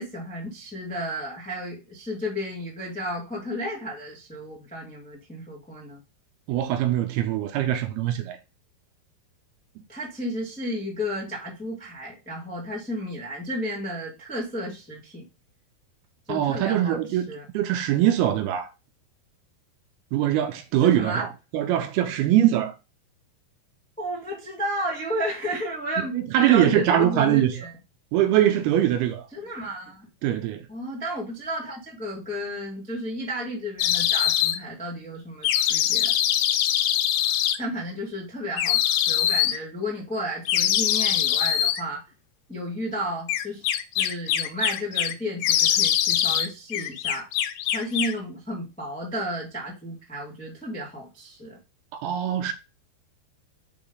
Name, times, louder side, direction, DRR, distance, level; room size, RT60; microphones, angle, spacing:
voice 1, 0.0-6.0 9.9-15.2 16.3-17.0 17.3-17.4 20.8-21.3 24.0-27.7 29.3-30.1 30.7-36.1 37.6-42.0 42.5-43.6 43.9-47.3 47.7-51.6, equal, 10° left, 0.4 m, -32 dB
voice 2, 6.5-8.4 16.3-18.7 20.1-22.7 26.1-27.6 28.1-29.3 30.2-30.6 51.9-52.5, right 11 dB, 80° right, 2.5 m, -22 dB
sound 1, 33.8-34.6 35.4-37.6 38.6-39.6 40.5-41.8 43.3-45.1 45.4-46.5 46.7-48.2, left 11 dB, 90° left, 2.8 m, -23 dB
6.0 x 4.8 x 3.9 m
omnidirectional pair, 4.8 m